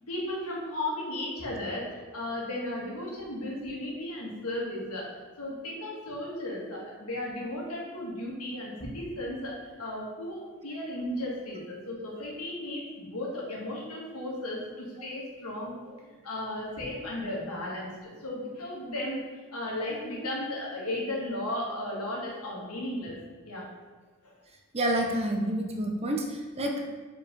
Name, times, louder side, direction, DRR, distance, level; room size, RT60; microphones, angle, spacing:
voice 1, 0.1-5.1 5.4-19.2 19.5-23.2 23.4-23.7 24.2-24.3, left 1 dB, 85° left, -3 dB, 1.9 m, -35 dB
voice 2, 24.7-26.8, right 1 dB, 30° right, 1 dB, 0.8 m, -28 dB
5.3 x 4.7 x 5.2 m, 1.4 s
head